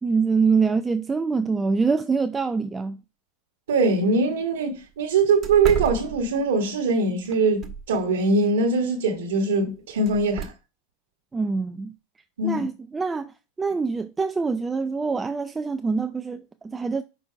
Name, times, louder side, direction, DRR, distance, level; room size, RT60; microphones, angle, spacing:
voice 1, 0.0-3.0 11.3-11.9 12.4-13.3 13.6-17.0, right 4 dB, 15° right, 0.4 m, -24 dB
voice 2, 3.7-10.5 12.4-12.6, right 3 dB, 80° right, 1.3 m, -22 dB
sound 1, 3.8-3.9 4.3-4.4 4.8-4.9 5.4-6.6 7.2-8.1 10.1-10.5, right 7 dB, 35° right, 1.2 m, -33 dB
6.0 x 4.0 x 4.6 m
hypercardioid pair, 100°, 0 cm